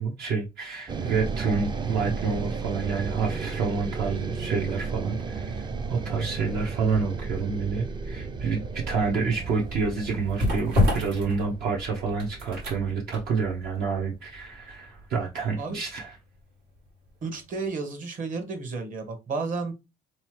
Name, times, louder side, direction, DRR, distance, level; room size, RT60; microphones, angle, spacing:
voice 1, 0.0-16.2, right 5 dB, 70° right, 0.8 m, -28 dB
sound 1, 0.9-15.1, right 4 dB, 25° right, 0.4 m, -34 dB
sound 2, 9.1-17.1 17.4-17.6, left 2 dB, 85° right, 1.6 m, -30 dB
voice 2, 17.2-19.7, right 4 dB, 50° right, 1.2 m, -32 dB
3.6 x 3.1 x 3.1 m
cardioid pair, 110°, 17 cm